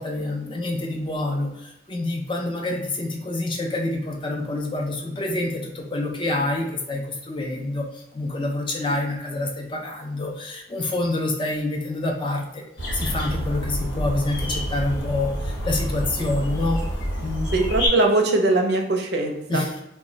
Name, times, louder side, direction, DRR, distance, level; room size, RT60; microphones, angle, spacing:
voice 1, 0.0-12.6 12.9-16.8 17.2-17.5 19.5-19.8, left 2 dB, 25° left, 1 dB, 0.4 m, -27 dB
sound 1, 12.8-17.9, equal, 75° left, 1.0 m, -28 dB
voice 2, 17.5-19.6, right 2 dB, 60° right, 3 dB, 0.5 m, -21 dB
2.2 x 2.1 x 3.7 m, 0.86 s
head